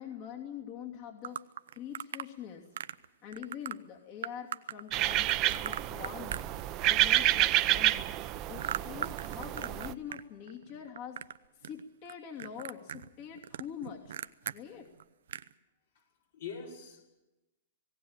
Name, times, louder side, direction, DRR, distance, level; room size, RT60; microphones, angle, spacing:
voice 1, 0.0-1.4 1.7-2.6 3.2-6.4 6.8-8.1 8.5-11.2 11.6-14.2 14.5-14.9, left 8 dB, 45° left, 1 dB, 2.8 m, -44 dB
sound 1, 1.2-2.3 2.8-3.1 3.3-3.8 4.2-7.0 7.3-10.2 10.5-11.4 11.6-12.1 12.4-14.6 15.0-15.1 15.3-15.5, right 9 dB, 75° right, 0.7 m, -39 dB
sound 2, 4.9-9.9, right 15 dB, 35° right, 0.8 m, -29 dB
voice 2, 5.6-6.2 8.9-9.0 14.7-14.9 15.9-16.1 16.3-17.1, left 6 dB, 70° left, -1 dB, 5.7 m, -47 dB
18.5 x 17.5 x 9.0 m, 1.0 s
hypercardioid pair, 125°, 0 cm